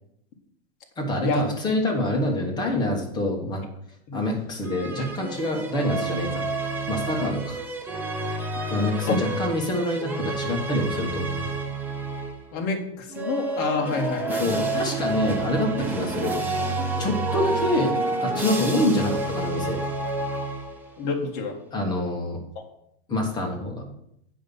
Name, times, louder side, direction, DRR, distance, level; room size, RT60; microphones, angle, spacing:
voice 1, 1.0-3.6 4.1-6.4 6.9-7.6 8.7-11.5 14.4-16.4 17.0-19.8 21.7-22.4 23.1-23.9, left 1 dB, 15° left, 1 dB, 1.3 m, -26 dB
sound 1, 4.6-12.5 13.1-21.0, right 2 dB, 5° right, 0.6 m, -29 dB
voice 2, 12.5-14.6 21.0-21.6 22.5-22.6, left 4 dB, 30° left, 2 dB, 1.5 m, -28 dB
8.9 x 5.4 x 5.4 m, 0.75 s
supercardioid pair, 165°, 32 cm